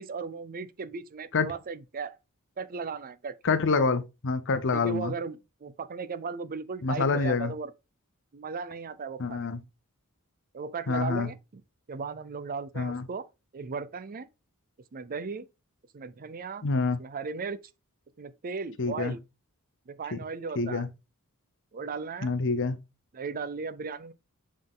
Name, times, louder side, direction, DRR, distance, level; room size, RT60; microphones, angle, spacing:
voice 1, 0.0-2.2 2.6-3.3 4.7-7.7 8.3-9.7 10.5-11.6 11.9-13.3 13.5-14.3 14.9-15.5 15.9-16.6 17.0-17.6 18.2-19.2 19.9-20.9 21.7-22.3 23.1-24.1, right 4 dB, 40° right, 0.5 m, -36 dB
voice 2, 3.4-5.1 6.8-7.5 9.2-9.6 10.9-11.3 12.8-13.0 16.6-17.0 18.8-19.1 20.1-20.2 20.6-20.9 22.2-22.8, left 4 dB, 60° left, 0.8 m, -27 dB
7.3 x 3.8 x 3.7 m
head